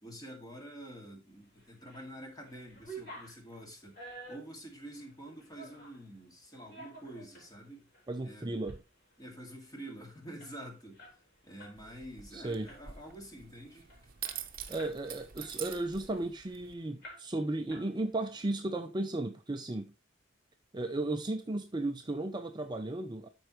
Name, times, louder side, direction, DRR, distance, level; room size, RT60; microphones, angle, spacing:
voice 1, 0.0-4.0 4.3-7.9 8.2-8.6 9.2-11.0 11.4-13.9, right 1 dB, 20° left, 2.2 m, -47 dB
sound 1, 1.6-2.1 2.4-6.0 6.5-7.5 7.9-8.1 8.5-8.8 9.1-9.2 9.5-11.8 12.1-12.3 12.7-13.1 13.6-13.7 13.9-15.0 15.4-16.6 17.0-17.4 17.7-18.3, right 2 dB, 55° left, 3.8 m, -50 dB
voice 2, 8.1-8.8 12.3-12.7 14.7-19.9 20.7-23.3, right 2 dB, 20° right, 0.5 m, -35 dB
sound 2, 11.8-16.7, right 10 dB, 50° right, 0.8 m, -46 dB
12.5 x 4.6 x 3.1 m
head